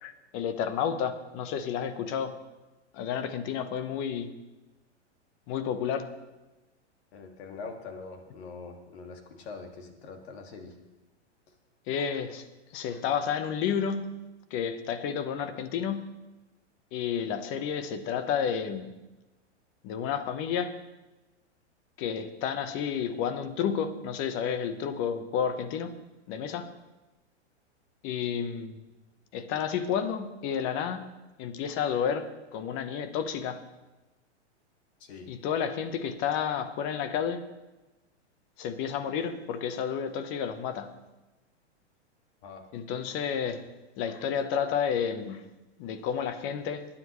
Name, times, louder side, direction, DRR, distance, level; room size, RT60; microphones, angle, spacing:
voice 1, 0.0-2.4 2.9-4.3 5.5-6.1 11.9-12.5 12.7-14.2 14.5-16.1 16.9-18.9 19.8-20.7 22.0-25.9 26.3-26.7 28.0-28.8 29.3-31.0 31.4-33.6 35.3-37.4 38.6-40.9 42.7-43.6 44.0-45.5 45.8-46.9, left 7 dB, 35° left, 11 dB, 1.1 m, -31 dB
voice 2, 7.1-10.7 35.0-35.3 42.4-42.6, left 4 dB, 65° left, 4 dB, 2.3 m, -43 dB
20.5 x 9.9 x 3.2 m, 1.1 s
hypercardioid pair, 130°, 35 cm